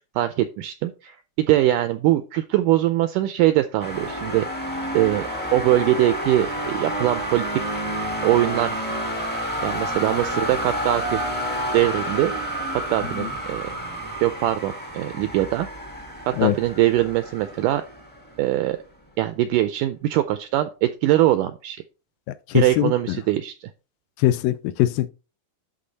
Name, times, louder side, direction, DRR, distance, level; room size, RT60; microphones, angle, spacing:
voice 1, 0.2-4.5 4.9-7.5 8.2-8.9 9.6-11.2 11.7-12.3 12.9-13.7 14.2-15.7 16.3-17.8 18.4-18.8 19.2-21.8 22.5-23.7, right 14 dB, 85° right, 1.8 m, -22 dB
sound 1, 3.8-18.6, equal, 15° left, 0.3 m, -30 dB
voice 2, 22.5-23.2 24.2-25.1, left 13 dB, 80° left, 2.3 m, -21 dB
11.0 x 3.7 x 4.0 m
omnidirectional pair, 4.2 m